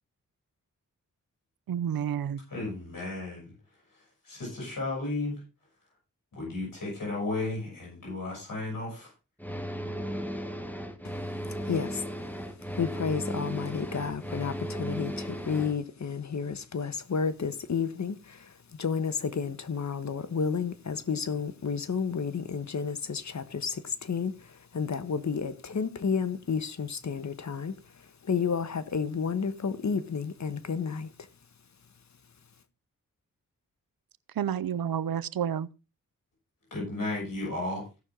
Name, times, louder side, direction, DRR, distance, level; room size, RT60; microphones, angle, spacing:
voice 1, 1.7-2.4 34.4-35.7, right 9 dB, 90° right, 0.7 m, -30 dB
voice 2, 2.5-3.5 4.2-5.3 6.3-9.1 36.7-37.8, left 2 dB, 70° left, 7.9 m, -34 dB
sound 1, 9.4-15.8, equal, 5° left, 1.6 m, -35 dB
voice 3, 11.7-12.1 12.8-18.5 18.8-24.3 24.7-27.7 28.2-31.1, left 6 dB, 55° left, 1.2 m, -31 dB
17.0 x 6.5 x 3.8 m
cardioid pair, 70°, 34 cm